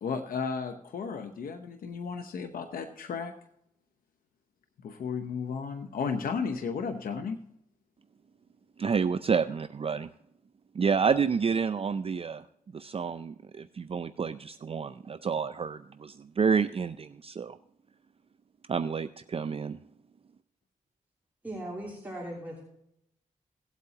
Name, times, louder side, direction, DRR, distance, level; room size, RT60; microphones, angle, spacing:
voice 1, 0.0-3.3 4.8-7.4, left 5 dB, 90° left, 6 dB, 0.8 m, -34 dB
voice 2, 8.8-10.1 10.8-12.4 12.7-17.6 18.7-19.8, right 6 dB, 40° right, 11 dB, 0.4 m, -29 dB
voice 3, 21.4-22.6, right 1 dB, 10° right, -4 dB, 3.2 m, -38 dB
17.5 x 8.2 x 2.9 m, 0.75 s
cardioid pair, 65°, 14 cm